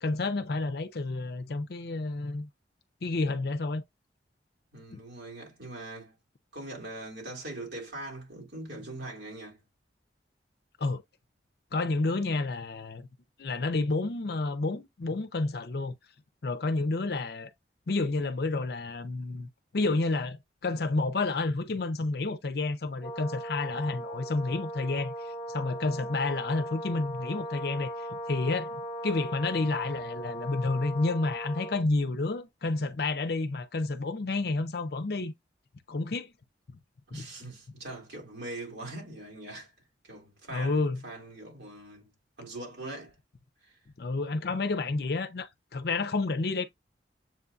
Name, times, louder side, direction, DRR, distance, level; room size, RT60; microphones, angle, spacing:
voice 1, 0.0-2.5 3.0-3.8 4.9-5.0 10.8-11.0 11.7-13.1 13.4-15.9 16.4-17.5 17.9-19.5 19.7-35.3 35.9-36.3 37.2-37.3 40.5-41.0 44.0-46.6, left 3 dB, 60° left, 0.5 m, -30 dB
voice 2, 4.7-6.1 6.5-9.6 37.1-39.7 40.0-42.1 42.4-43.1 43.6-43.7, right 2 dB, 75° right, 2.5 m, -42 dB
Brass instrument, 23.0-31.9, right 1 dB, 25° left, 1.2 m, -38 dB
7.5 x 2.6 x 2.3 m
head